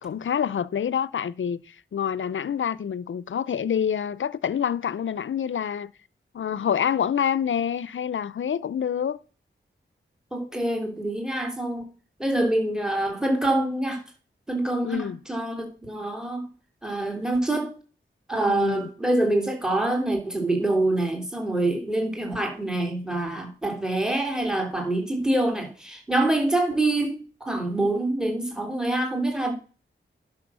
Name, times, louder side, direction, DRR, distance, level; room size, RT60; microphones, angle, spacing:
voice 1, 0.0-5.9 6.3-9.2 14.8-15.2 18.5-18.9, left 8 dB, 70° left, 0.6 m, -27 dB
voice 2, 10.3-11.9 12.2-14.0 14.5-16.5 16.8-17.7 18.3-29.5, right 2 dB, 5° right, 3.3 m, -25 dB
11.0 x 6.0 x 6.2 m
cardioid pair, 50°, 21 cm